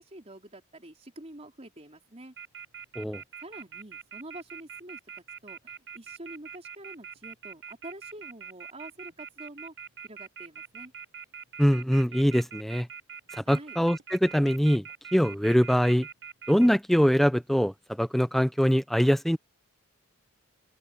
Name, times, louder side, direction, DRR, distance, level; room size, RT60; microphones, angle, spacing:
voice 1, 0.0-2.3 3.4-5.0 5.4-9.7 10.0-10.9 13.5-13.8, right 1 dB, 30° right, 4.1 m, -46 dB
Telephone, 2.4-16.7, right 7 dB, 55° right, 6.5 m, -43 dB
voice 2, 11.6-12.9 13.4-14.8 15.1-16.1 16.5-19.4, equal, ahead, 0.8 m, -23 dB
open air
head